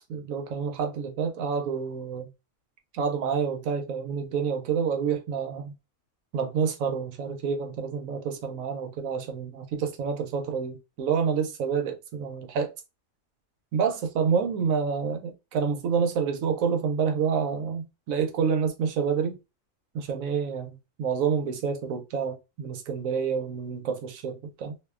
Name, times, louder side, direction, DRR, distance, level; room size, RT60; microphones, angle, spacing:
voice 1, 0.1-2.2 2.9-5.7 6.3-12.7 13.7-19.4 19.9-20.7 21.0-24.7, right 6 dB, 85° right, 1.0 m, -28 dB
2.6 x 2.1 x 2.3 m
omnidirectional pair, 1.4 m